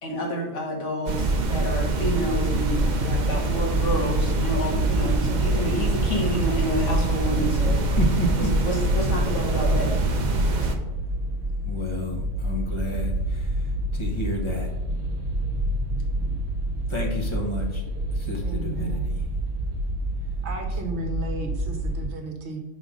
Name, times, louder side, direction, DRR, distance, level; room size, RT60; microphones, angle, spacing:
voice 1, 0.0-7.9 8.6-9.9, equal, 80° left, 0 dB, 1.6 m, -29 dB
sound 1, 1.1-10.8, right 2 dB, 45° right, 0.7 m, -24 dB
sound 2, 2.5-22.1, right 1 dB, 85° right, 1.1 m, -28 dB
voice 2, 7.9-8.5 11.6-14.7 16.9-17.8 18.1-19.2, left 1 dB, 25° left, -1 dB, 1.1 m, -31 dB
voice 3, 18.4-19.0 20.4-22.6, right 1 dB, 65° right, 2 dB, 1.2 m, -34 dB
5.0 x 4.0 x 5.1 m, 0.93 s
omnidirectional pair, 1.2 m